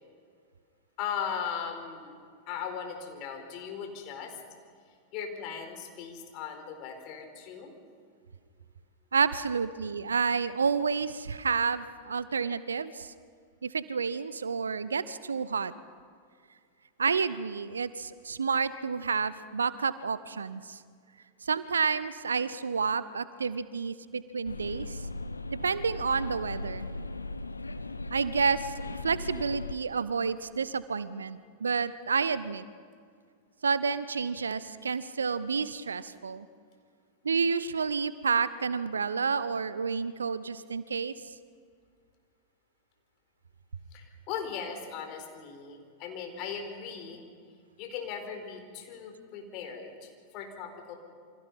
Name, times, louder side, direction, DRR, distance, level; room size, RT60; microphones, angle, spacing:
voice 1, 1.0-4.4 5.1-7.7 43.9-47.2 47.8-51.0, left 7 dB, 40° left, 5 dB, 4.2 m, -38 dB
voice 2, 9.1-13.1 13.6-15.7 17.0-20.8 21.4-25.1 25.6-26.9 28.1-28.7 29.0-32.7 33.6-36.5 37.2-41.3, right 5 dB, 75° right, 16 dB, 0.8 m, -30 dB
sound 1, 24.4-29.7, left 2 dB, 80° left, 0.9 m, -38 dB
28.5 x 25.0 x 5.6 m, 2.1 s
figure-of-eight pair, 90°, 0 cm